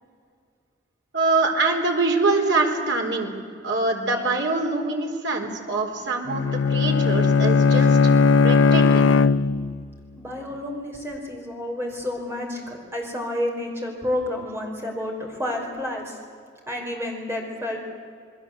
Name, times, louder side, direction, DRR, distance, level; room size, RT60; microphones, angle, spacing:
voice 1, 1.1-3.4 3.6-6.4 6.7-9.2, right 3 dB, 70° right, 2 dB, 4.0 m, -24 dB
Bowed string instrument, 6.3-9.9, left 4 dB, 85° left, 0.5 m, -18 dB
voice 2, 10.2-16.1 16.7-17.8, left 1 dB, 15° right, 0 dB, 5.1 m, -30 dB
28.0 x 21.0 x 8.1 m, 2.2 s
head